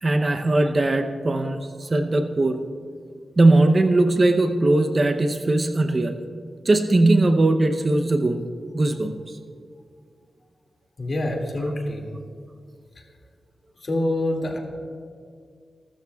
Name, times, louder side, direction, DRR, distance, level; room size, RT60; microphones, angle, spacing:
voice 1, 0.0-2.6 3.4-6.2 6.6-8.4 8.7-9.2, right 2 dB, 30° right, 5 dB, 0.7 m, -20 dB
voice 2, 11.0-12.0 13.8-14.6, left 1 dB, 40° left, 1 dB, 2.1 m, -25 dB
28.0 x 13.0 x 2.3 m, 2.2 s
wide cardioid pair, 155°, 0 cm